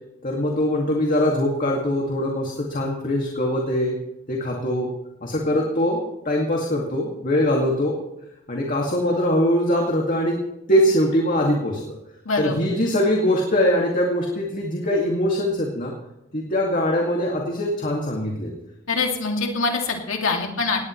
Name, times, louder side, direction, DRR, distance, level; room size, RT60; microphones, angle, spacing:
voice 1, 0.2-3.9 4.3-4.9 5.2-8.0 8.5-10.4 10.7-11.8 12.4-15.9 16.3-18.5, left 1 dB, 40° left, -1 dB, 2.2 m, -22 dB
voice 2, 12.3-12.6 18.9-20.9, left 4 dB, 75° left, 2 dB, 2.5 m, -24 dB
19.0 x 18.0 x 3.2 m, 0.87 s
head